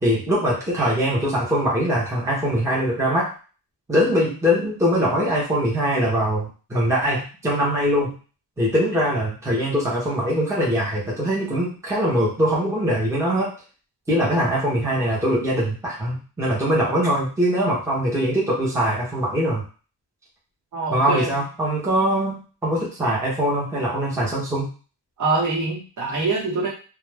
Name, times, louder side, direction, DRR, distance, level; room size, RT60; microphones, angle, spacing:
voice 1, 0.0-3.3 3.9-8.2 8.6-13.5 14.1-19.6 20.9-24.7, equal, 5° right, -6 dB, 0.8 m, -22 dB
voice 2, 20.7-21.4 25.2-26.7, right 3 dB, 45° right, -4 dB, 1.1 m, -24 dB
2.4 x 2.2 x 3.2 m, 0.37 s
cardioid pair, 135°, 43 cm